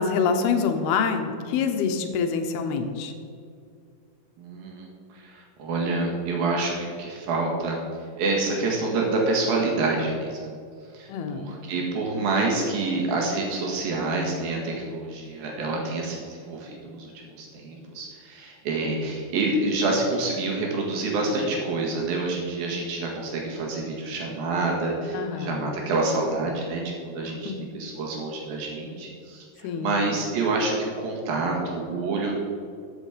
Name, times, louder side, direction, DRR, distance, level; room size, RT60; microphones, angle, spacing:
voice 1, 0.0-3.1 11.1-11.5 25.1-25.7 27.2-27.6 29.6-30.0, left 5 dB, 85° left, 6 dB, 2.9 m, -26 dB
voice 2, 4.4-4.9 5.2-7.8 8.2-10.6 10.9-32.3, right 3 dB, 70° right, -1 dB, 3.5 m, -27 dB
14.0 x 7.4 x 5.0 m, 2.3 s
omnidirectional pair, 4.4 m